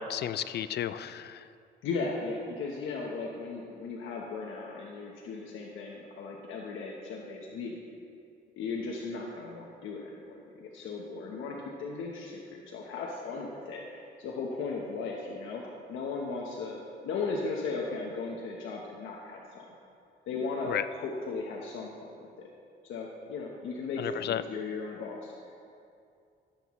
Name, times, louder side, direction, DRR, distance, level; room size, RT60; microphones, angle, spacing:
voice 1, 0.0-1.4 20.7-20.8 24.0-24.4, left 10 dB, 55° left, 14 dB, 0.4 m, -32 dB
voice 2, 1.8-7.7 8.6-15.6 15.9-19.6 20.3-22.5 22.8-25.3, left 4 dB, 80° left, -2 dB, 1.0 m, -37 dB
14.5 x 7.7 x 3.1 m, 2.5 s
cardioid pair, 90°, 20 cm